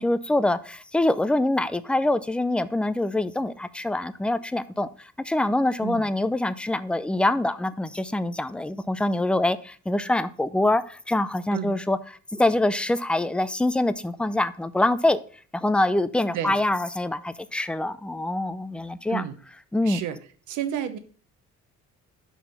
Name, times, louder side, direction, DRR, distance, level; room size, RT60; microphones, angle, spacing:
voice 1, 0.0-4.9 5.3-15.2 15.5-19.2 19.7-20.0, left 1 dB, 5° left, 0.4 m, -25 dB
voice 2, 19.8-20.2 20.5-21.0, right 10 dB, 80° right, 0.9 m, -30 dB
5.8 x 4.7 x 5.3 m
cardioid pair, 90°, 30 cm